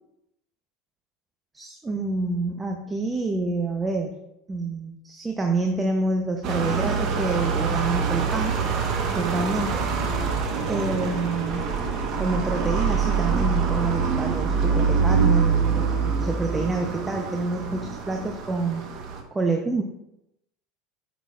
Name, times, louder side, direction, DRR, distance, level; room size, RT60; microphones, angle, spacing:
voice 1, 1.5-4.1 4.5-8.5 9.1-9.8 10.7-11.6 12.2-15.8 16.2-18.8 19.3-19.8, right 3 dB, 15° right, 3 dB, 0.8 m, -27 dB
sound 1, 6.4-19.2, right 5 dB, 50° right, 1.2 m, -25 dB
8.9 x 6.1 x 2.5 m, 0.85 s
hypercardioid pair, 85°, 0 cm